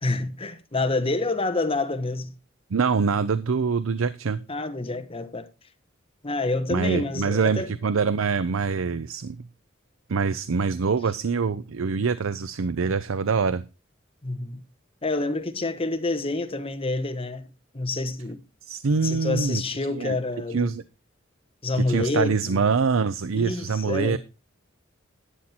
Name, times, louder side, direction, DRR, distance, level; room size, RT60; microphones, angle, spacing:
voice 1, 0.0-2.3 4.5-5.5 6.2-7.7 14.2-14.6 15.0-17.5 17.7-18.4 19.0-20.7 21.6-22.7 23.3-24.2, left 2 dB, 30° left, 1.3 m, -27 dB
voice 2, 2.7-4.4 6.7-9.4 10.1-13.6 18.6-19.6 20.0-20.2 20.5-20.8 21.7-24.2, right 5 dB, 80° right, 0.6 m, -24 dB
11.5 x 8.7 x 4.4 m
head